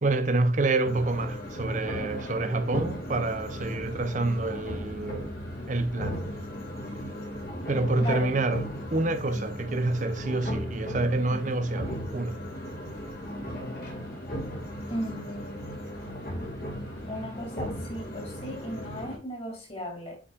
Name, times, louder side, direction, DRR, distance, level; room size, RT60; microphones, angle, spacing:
voice 1, 0.0-5.3 5.7-6.3 7.7-12.5, right 2 dB, 40° right, 0.6 m, -27 dB
sound 1, 0.8-19.2, equal, 50° left, 2.3 m, -37 dB
voice 2, 8.0-8.4 14.9-15.6 17.1-20.2, equal, 30° left, 2.7 m, -36 dB
8.4 x 5.3 x 2.5 m
head